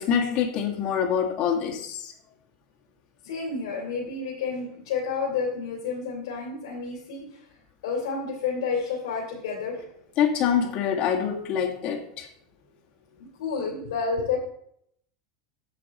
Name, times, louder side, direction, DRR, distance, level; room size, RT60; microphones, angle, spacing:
voice 1, 0.0-2.1 10.2-12.3, left 8 dB, 45° left, 1 dB, 1.9 m, -25 dB
voice 2, 3.2-7.5 7.8-9.9 13.2-14.4, left 5 dB, 85° left, -3 dB, 3.1 m, -30 dB
9.0 x 6.8 x 4.2 m, 0.69 s
supercardioid pair, 145°, 3 cm